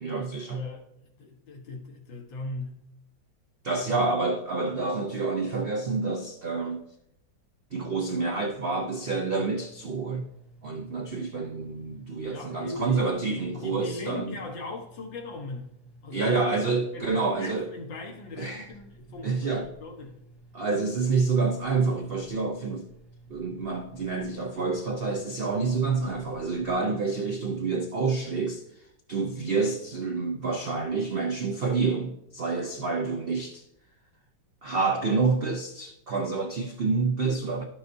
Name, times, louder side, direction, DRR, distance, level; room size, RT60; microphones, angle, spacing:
voice 1, 0.0-0.6 3.6-6.9 7.7-10.3 10.6-14.4 16.1-17.7 18.4-18.7 19.2-19.6 20.5-22.9 23.3-28.6 29.1-33.6 34.6-37.6, right 4 dB, 80° right, 0.5 m, -28 dB
voice 2, 0.5-2.8 3.7-4.0 12.2-13.1 13.4-15.7 16.0-16.6 16.9-20.2, left 3 dB, 80° left, 1.9 m, -39 dB
sound 1, 8.4-26.9, right 1 dB, ahead, 1.2 m, -54 dB
12.0 x 6.0 x 2.6 m
omnidirectional pair, 2.0 m